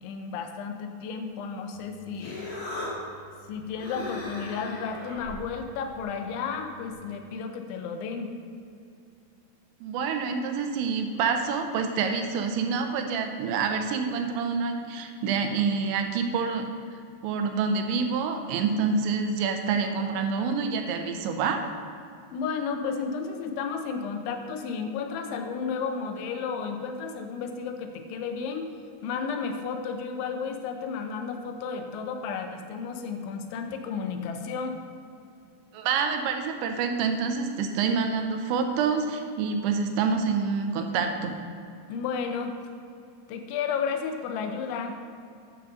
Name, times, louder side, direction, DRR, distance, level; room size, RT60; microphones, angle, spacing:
voice 1, 0.0-2.4 3.5-8.3 22.3-28.7 29.0-34.8 41.9-42.5 43.3-45.0, left 5 dB, 85° left, 5 dB, 3.2 m, -32 dB
Human voice, 1.7-6.9, left 2 dB, 35° left, 1.9 m, -39 dB
voice 2, 9.8-16.7 17.2-21.6 35.7-41.4, right 5 dB, 85° right, 5 dB, 3.0 m, -27 dB
9.7 x 5.4 x 6.6 m, 2.5 s
omnidirectional pair, 5.3 m